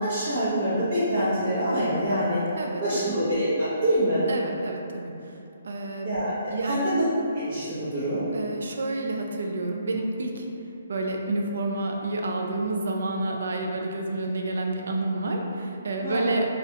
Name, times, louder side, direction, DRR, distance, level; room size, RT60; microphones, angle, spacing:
voice 1, 0.0-2.5 2.8-4.2 6.0-6.4 6.6-7.0 7.3-8.2 16.0-16.3, equal, 45° right, -12 dB, 0.7 m, -25 dB
voice 2, 2.6-3.2 4.3-5.1 5.6-6.1 6.5-6.9 8.3-10.5 10.9-16.5, right 2 dB, 70° right, 2 dB, 0.3 m, -29 dB
2.3 x 2.1 x 2.8 m, 2.6 s
hypercardioid pair, 165°, 0 cm